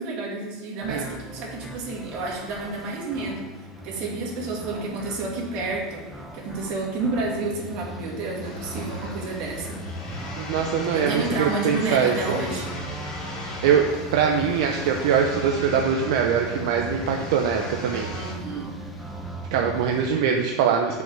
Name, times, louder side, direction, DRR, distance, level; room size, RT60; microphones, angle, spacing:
voice 1, 0.0-6.0 6.3-10.2 10.9-12.7 18.1-18.7, right 3 dB, 50° right, -2 dB, 2.3 m, -30 dB
sound 1, 0.8-20.1, right 1 dB, ahead, 1.0 m, -38 dB
sound 2, 8.4-18.3, left 2 dB, 35° left, 2.8 m, -37 dB
voice 2, 10.4-12.4 13.6-18.1 19.5-21.0, right 7 dB, 70° right, 3 dB, 0.7 m, -23 dB
6.2 x 5.7 x 7.0 m, 1.3 s
supercardioid pair, 150°, 2 cm